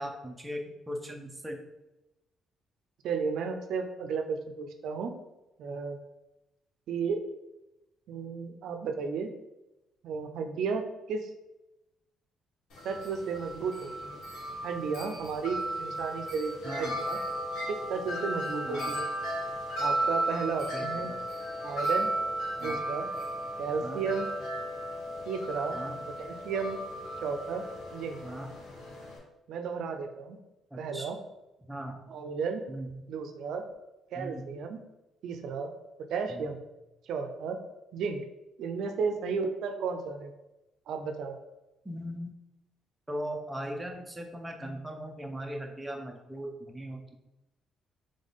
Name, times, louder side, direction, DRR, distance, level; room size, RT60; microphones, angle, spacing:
voice 1, 0.0-1.6 16.6-17.0 18.6-19.0 20.7-21.2 22.6-22.8 23.8-24.0 25.7-26.0 28.2-28.7 30.7-31.1 31.7-32.1 32.7-32.9 34.2-34.5 36.3-36.5 41.8-42.3 43.1-47.2, equal, 10° right, 2 dB, 0.5 m, -39 dB
voice 2, 3.0-5.2 5.6-6.0 6.9-7.2 8.1-9.3 10.0-11.3 12.8-14.2 14.6-17.2 17.7-19.1 19.8-21.1 21.6-22.1 22.6-23.1 23.6-24.3 25.3-25.8 26.2-26.8 27.2-27.7 27.9-28.2 29.5-30.4 30.8-31.2 32.1-32.6 33.1-33.6 34.1-34.8 35.2-35.7 36.1-36.6 37.1-37.6 37.9-38.2 38.6-40.3 40.9-41.4, right 5 dB, 70° right, 6 dB, 0.4 m, -33 dB
Wind chime, 12.7-29.2, right 1 dB, 90° left, 1.5 m, -35 dB
3.6 x 3.3 x 3.9 m, 0.97 s
cardioid pair, 145°, 0 cm